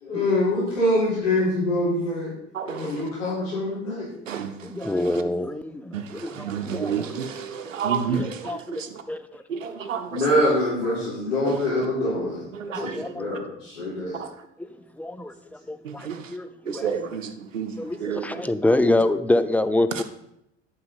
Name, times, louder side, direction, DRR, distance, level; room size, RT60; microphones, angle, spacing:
voice 1, 0.0-2.3 2.6-4.1 10.1-12.5 12.8-14.2, left 1 dB, 70° left, 4.2 m, -24 dB
voice 2, 4.6-7.2 7.5-7.7 8.1-9.4 12.7-13.3 14.6-14.7 14.9-17.0 17.8-20.0, left 2 dB, 5° left, 0.3 m, -26 dB
voice 3, 6.4-8.3 9.5-10.2 12.5-12.9 15.9-16.2 16.8-17.7 18.0-18.2, right 7 dB, 85° right, 0.9 m, -29 dB
9.5 x 6.5 x 5.5 m
figure-of-eight pair, 75°, 38 cm